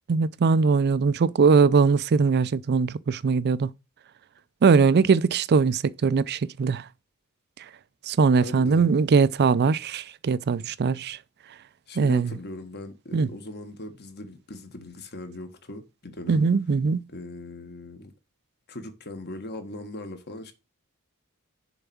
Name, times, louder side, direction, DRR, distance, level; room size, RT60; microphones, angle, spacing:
voice 1, 0.1-3.7 4.6-6.8 8.1-11.2 12.0-12.3 13.1-13.3 16.3-17.0, right 5 dB, 50° right, 0.4 m, -21 dB
voice 2, 8.4-8.9 11.9-16.4 17.1-18.1 18.7-20.5, left 2 dB, 50° left, 1.6 m, -39 dB
7.0 x 4.7 x 7.0 m
head